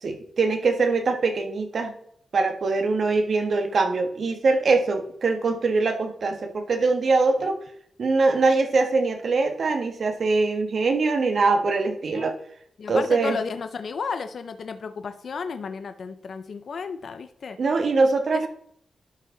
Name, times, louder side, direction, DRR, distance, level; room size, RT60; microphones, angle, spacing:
voice 1, 0.0-1.9 2.3-7.6 8.0-12.3 12.9-13.4 17.6-18.5, right 3 dB, 55° right, 5 dB, 1.6 m, -22 dB
voice 2, 12.8-17.6 18.3-18.5, left 5 dB, 60° left, 10 dB, 0.6 m, -33 dB
11.5 x 5.2 x 3.9 m, 0.64 s
wide cardioid pair, 145°, 0 cm